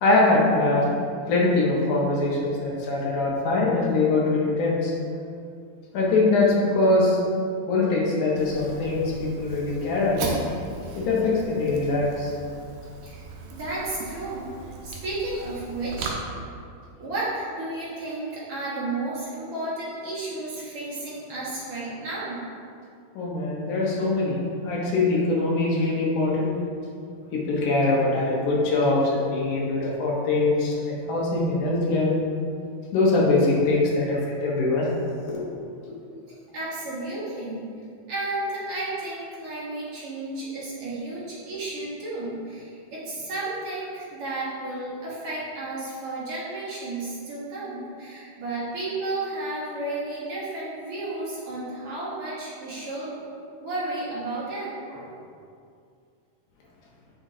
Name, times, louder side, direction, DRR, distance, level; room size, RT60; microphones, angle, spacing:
voice 1, 0.0-4.9 5.9-7.2 7.7-10.4 11.0-12.3 23.2-26.5 27.3-32.1 32.9-34.9 35.3-35.5 35.9-36.0, left 2 dB, 70° left, -4 dB, 2.4 m, -23 dB
Fire, 8.4-16.1, right 4 dB, 75° right, 2.2 m, -38 dB
voice 2, 13.5-14.5 14.8-16.2 17.0-22.4 36.5-37.6 38.1-53.2 53.6-55.1, right 2 dB, 50° right, -9 dB, 2.2 m, -32 dB
8.1 x 6.1 x 2.7 m, 2.4 s
omnidirectional pair, 4.1 m